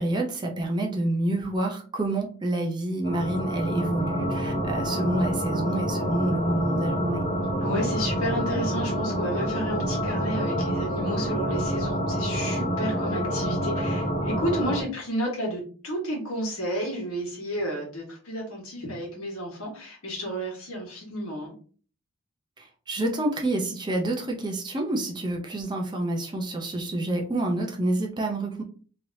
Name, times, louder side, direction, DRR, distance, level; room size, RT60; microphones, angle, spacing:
voice 1, 0.0-7.2 22.6-28.6, right 1 dB, 20° right, 1 dB, 0.5 m, -28 dB
sound 1, 3.0-14.8, equal, 35° left, 0.8 m, -27 dB
voice 2, 7.6-21.5, equal, 75° left, -1 dB, 1.4 m, -31 dB
3.2 x 2.8 x 2.6 m, 0.40 s
head